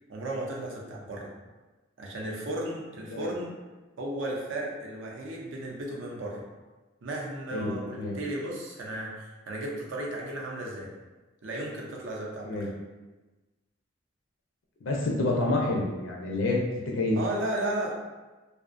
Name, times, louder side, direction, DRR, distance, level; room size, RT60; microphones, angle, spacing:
voice 1, 0.1-1.3 2.0-3.5 4.0-6.4 7.0-10.9 11.4-12.7 17.1-17.9, right 1 dB, 65° right, -2 dB, 0.5 m, -34 dB
voice 2, 7.5-8.2 12.4-12.7 14.8-16.6 16.9-17.2, left 2 dB, 70° left, -1 dB, 0.4 m, -28 dB
2.5 x 2.0 x 2.5 m, 1.2 s
head